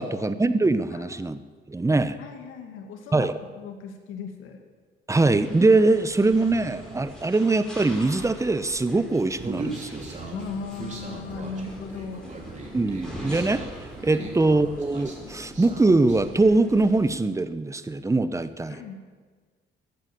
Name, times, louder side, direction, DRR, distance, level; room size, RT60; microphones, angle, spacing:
voice 1, 0.0-1.4 1.7-2.2 3.1-3.3 5.1-10.2 12.7-13.6 14.0-18.8, right 2 dB, 15° right, 13 dB, 0.8 m, -22 dB
voice 2, 0.9-1.4 2.2-3.3 3.6-4.6 10.3-12.3 14.1-14.3 18.7-19.0, left 5 dB, 90° left, 5 dB, 2.1 m, -37 dB
sound 1, 5.2-17.2, equal, 5° left, 4.7 m, -42 dB
Human voice, 9.4-16.2, right 3 dB, 35° right, 3.3 m, -38 dB
15.0 x 10.5 x 7.7 m, 1.5 s
cardioid pair, 90°, 20 cm